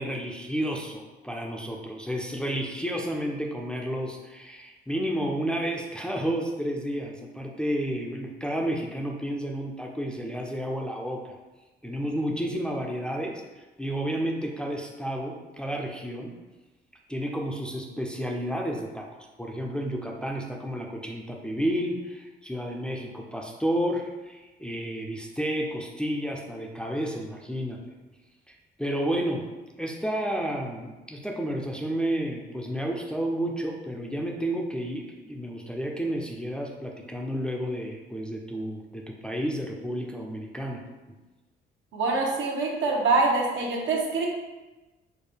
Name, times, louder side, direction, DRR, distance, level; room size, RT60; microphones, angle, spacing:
voice 1, 0.0-11.4 11.8-16.3 17.1-27.8 28.8-29.5 29.8-40.8 41.1-41.2, equal, 5° left, -1 dB, 0.4 m, -31 dB
voice 2, 41.9-44.3, right 3 dB, 75° right, -1 dB, 0.8 m, -25 dB
4.4 x 2.1 x 3.3 m, 1.1 s
cardioid pair, 90°, 20 cm